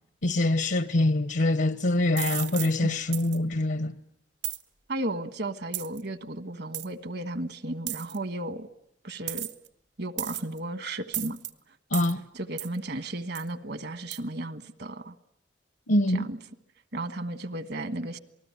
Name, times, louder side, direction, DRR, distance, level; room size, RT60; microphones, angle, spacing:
voice 1, 0.2-3.9 11.9-12.2 15.9-16.3, left 1 dB, 75° left, 1.0 m, -24 dB
sound 1, 2.2-2.7 3.1-3.4 4.4-4.6 5.7-6.0 6.7-6.9 7.9-8.2 9.3-9.7 10.2-10.6 11.1-11.5 11.9-12.1 12.6-12.8 13.4-13.5 14.1-14.2, right 13 dB, 80° right, 1.5 m, -34 dB
voice 2, 4.9-8.7 9.0-9.5 10.0-11.4 12.3-15.1 16.1-16.4 16.9-18.2, right 1 dB, 65° right, 1.4 m, -34 dB
28.0 x 20.0 x 9.6 m
head